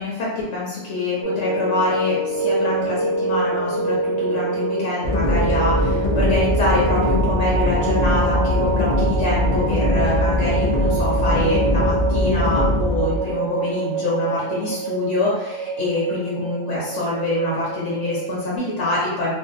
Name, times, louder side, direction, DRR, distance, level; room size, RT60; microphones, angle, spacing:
voice 1, 0.0-19.3, left 2 dB, 80° left, -6 dB, 1.0 m, -25 dB
sound 1, 1.2-18.6, right 4 dB, 80° right, 0.9 m, -26 dB
sound 2, 5.0-15.1, left 1 dB, 60° left, 0.4 m, -22 dB
2.6 x 2.3 x 2.4 m, 0.96 s
omnidirectional pair, 1.2 m